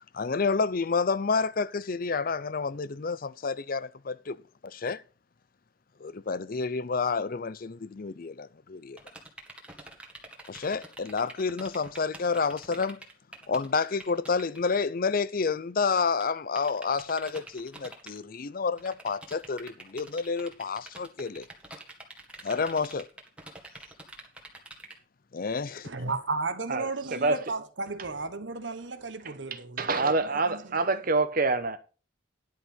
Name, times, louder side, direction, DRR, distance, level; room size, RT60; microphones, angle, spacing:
voice 1, 0.1-4.4 4.6-5.0 6.0-9.0 10.5-13.0 13.5-21.4 22.4-23.1 25.3-25.9, left 4 dB, 50° left, 0.5 m, -29 dB
sound 1, 9.0-14.7 15.8-15.9 16.2-16.3 16.6-18.2 18.8-24.9, right 2 dB, 5° right, 1.9 m, -46 dB
voice 2, 25.8-30.8, right 3 dB, 70° right, 1.2 m, -34 dB
voice 3, 26.7-27.4 29.2-29.3 29.8-31.8, right 3 dB, 45° right, 1.0 m, -26 dB
11.0 x 5.8 x 5.6 m
head